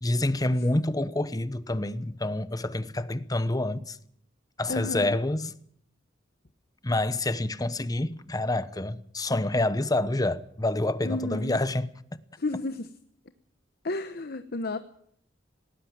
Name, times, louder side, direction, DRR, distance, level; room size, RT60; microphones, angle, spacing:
voice 1, 0.0-4.0 4.6-5.5 6.8-11.9, left 2 dB, 20° left, 1.0 m, -27 dB
voice 2, 4.7-5.2 11.0-11.6 12.4-12.9 13.8-14.8, left 2 dB, 55° left, 1.0 m, -32 dB
19.0 x 19.0 x 7.5 m
head